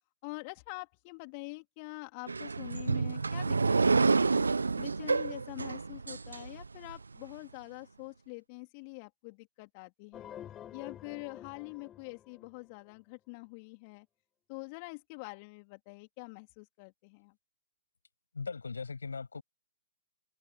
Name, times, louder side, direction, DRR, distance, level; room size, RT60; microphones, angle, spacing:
voice 1, 0.2-4.4 4.8-10.3 10.7-14.1 14.5-17.3, left 31 dB, 35° left, 3.0 m, -45 dB
sound 1, 2.3-7.0, right 4 dB, 80° right, 0.6 m, -29 dB
sound 2, 10.1-12.9, left 10 dB, 20° left, 4.3 m, -48 dB
voice 2, 18.3-19.4, left 4 dB, 75° left, 7.2 m, -39 dB
figure-of-eight pair, 120°, 0 cm